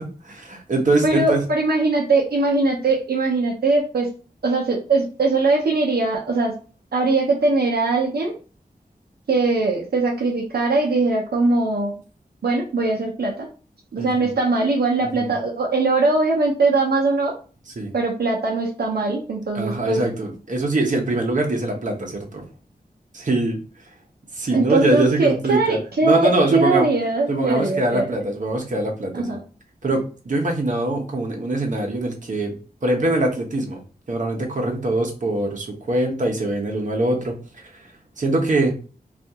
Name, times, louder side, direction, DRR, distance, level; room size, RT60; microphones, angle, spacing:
voice 1, 0.0-1.4 14.0-14.3 15.2-15.3 17.8-17.9 19.5-22.4 23.1-23.6 24.3-26.9 27.3-29.3 29.8-32.5 32.8-33.8 34.1-37.7 38.2-38.7, right 2 dB, 50° right, 1 dB, 0.9 m, -23 dB
voice 2, 1.0-4.1 4.4-6.5 6.9-8.3 9.3-11.9 12.4-13.5 13.9-17.3 17.9-20.0 24.5-28.1 29.1-29.4, right 3 dB, 80° right, -1 dB, 0.7 m, -21 dB
2.7 x 2.5 x 3.5 m, 0.37 s
wide cardioid pair, 80°, 16 cm